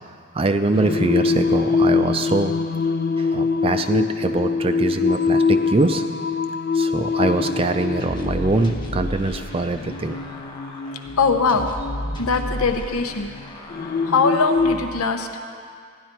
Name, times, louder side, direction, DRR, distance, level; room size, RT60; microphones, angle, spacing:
voice 1, 0.3-2.5 3.2-6.0 6.7-10.2, right 2 dB, 25° right, 7 dB, 0.4 m, -23 dB
Singing, 0.7-14.8, left 4 dB, 45° left, 0.3 m, -24 dB
sound 1, 8.0-15.0, equal, 20° left, 0.9 m, -34 dB
voice 2, 11.2-11.7 12.2-13.3 14.0-15.3, left 4 dB, 80° left, 6 dB, 0.9 m, -21 dB
16.0 x 11.0 x 4.4 m, 2.2 s
head